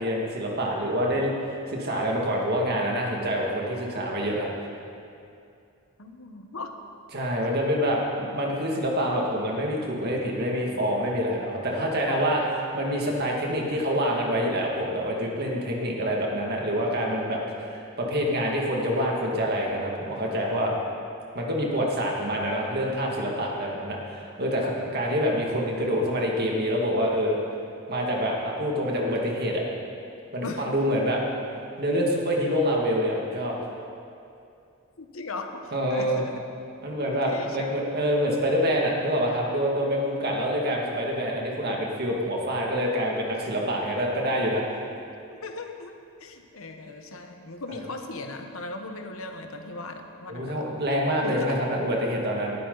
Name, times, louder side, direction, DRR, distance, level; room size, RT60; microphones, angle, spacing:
voice 1, 0.0-4.5 7.1-12.4 12.7-20.7 21.3-27.4 27.9-29.6 30.3-31.2 31.8-33.6 35.7-36.2 36.8-44.6 47.7-47.8 50.3-52.5, equal, 50° right, -2 dB, 2.1 m, -26 dB
voice 2, 6.0-6.7 7.8-7.9 11.7-12.7 30.4-30.7 35.0-36.4 37.1-37.7 45.3-50.6 51.2-51.6, left 2 dB, 75° left, 5 dB, 1.2 m, -38 dB
18.5 x 12.0 x 4.0 m, 2.6 s
head